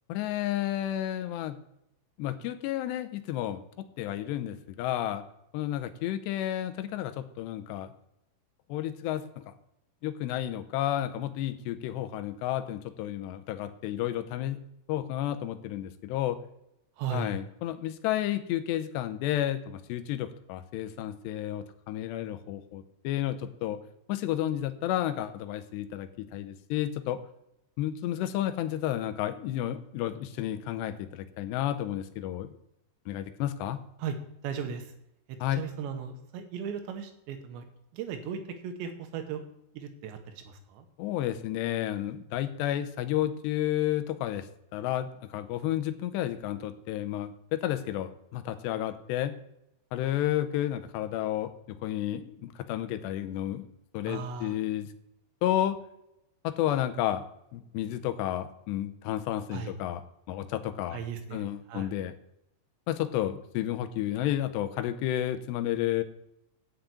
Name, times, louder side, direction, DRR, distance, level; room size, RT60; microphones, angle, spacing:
voice 1, 0.1-1.6 2.2-3.6 4.0-5.2 5.5-7.9 8.7-9.5 10.0-14.6 14.9-16.4 17.1-23.8 24.1-27.2 27.8-32.6 33.1-33.8 35.4-35.6 41.0-44.5 44.7-49.3 49.9-53.6 53.9-54.9 55.4-55.8 56.4-57.2 57.5-60.0 60.3-61.0 61.3-62.1 62.9-66.0, left 12 dB, 85° left, 10 dB, 2.9 m, -31 dB
voice 2, 17.0-17.3 34.0-34.2 34.4-34.9 35.3-37.7 37.9-39.4 39.7-40.9 54.1-54.5 59.5-59.7 60.9-61.9, right 7 dB, 90° right, 7 dB, 3.4 m, -37 dB
10.5 x 5.9 x 8.3 m, 0.84 s
omnidirectional pair, 4.9 m